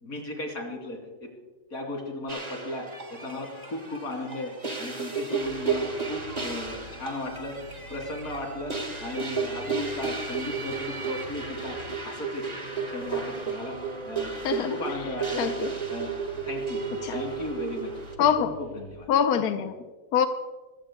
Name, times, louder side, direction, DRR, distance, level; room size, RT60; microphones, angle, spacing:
voice 1, 0.0-1.3 1.7-7.6 7.9-11.8 12.0-12.4 12.9-13.8 14.0-14.3 14.7-15.5 15.9-16.1 16.4-16.8 17.1-17.9 18.4-19.1, left 1 dB, 45° left, 3.3 m, -36 dB
sound 1, 2.3-18.1, right 5 dB, 20° right, 1.4 m, -33 dB
sound 2, 5.4-18.9, equal, 70° right, 4.5 m, -47 dB
voice 2, 14.4-14.7 15.4-15.7 17.0-17.2 18.2-18.5 19.1-19.7 20.1-20.3, left 8 dB, 70° left, 0.9 m, -24 dB
26.0 x 16.0 x 2.2 m
omnidirectional pair, 2.3 m